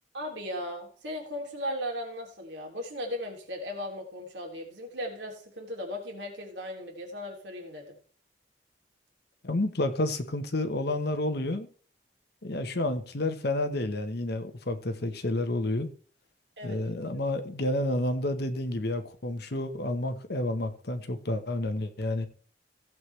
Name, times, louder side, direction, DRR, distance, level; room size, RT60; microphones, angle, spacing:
voice 1, 0.1-7.8 16.6-16.9, left 1 dB, 75° right, 3.0 m, -37 dB
voice 2, 9.4-11.7 12.4-15.9 16.6-22.3, left 1 dB, 65° left, 1.1 m, -30 dB
15.5 x 7.7 x 3.3 m
head